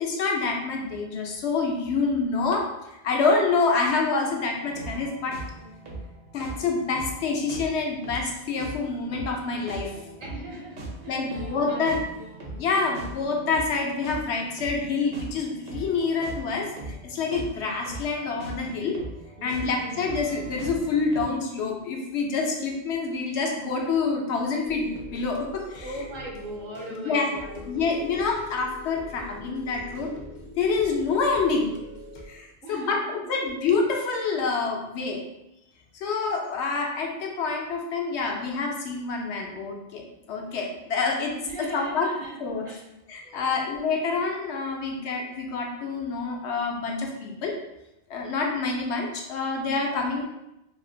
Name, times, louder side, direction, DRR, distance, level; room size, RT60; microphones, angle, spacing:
voice 1, 0.0-2.7 3.0-5.4 6.3-10.0 11.1-12.0 12.6-19.0 19.4-26.0 27.0-27.3 27.7-30.1 30.6-31.7 32.3-35.2 35.9-40.0 40.3-42.1 42.4-42.8 43.1-47.6 48.1-50.2, left 4 dB, 80° left, 1 dB, 0.9 m, -27 dB
sound 1, 4.5-21.2, right 1 dB, 85° right, 1.0 m, -40 dB
voice 2, 10.2-12.0 19.4-20.1 25.8-27.6 32.6-33.1 41.4-42.4 42.6-42.8 43.2-44.1, right 1 dB, 60° right, -2 dB, 0.6 m, -40 dB
sound 2, 24.6-32.3, left 2 dB, 60° left, 0.5 m, -43 dB
2.8 x 2.7 x 2.6 m, 0.89 s
omnidirectional pair, 1.1 m